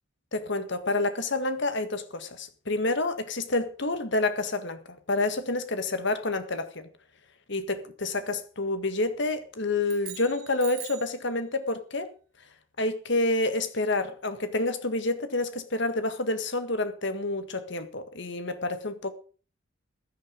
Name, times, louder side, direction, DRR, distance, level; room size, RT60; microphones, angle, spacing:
voice 1, 0.3-6.9 7.5-12.1 12.8-19.1, left 2 dB, 55° left, 1.7 m, -28 dB
sound 1, 9.8-11.2, right 12 dB, 80° right, 2.7 m, -42 dB
15.5 x 10.5 x 5.1 m
head